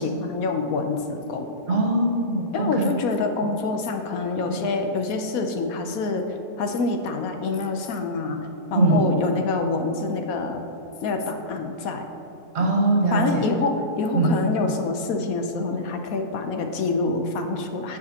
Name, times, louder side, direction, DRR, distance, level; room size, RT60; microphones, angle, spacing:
voice 1, 0.0-1.8 2.5-6.3 6.6-8.4 8.7-10.6 11.0-12.1 13.1-18.0, left 3 dB, 75° left, 5 dB, 1.1 m, -26 dB
voice 2, 1.7-2.9 8.7-9.0 12.5-13.4 14.1-14.3, right 2 dB, 50° right, -1 dB, 1.4 m, -21 dB
14.5 x 4.9 x 2.9 m, 2.9 s
omnidirectional pair, 1.5 m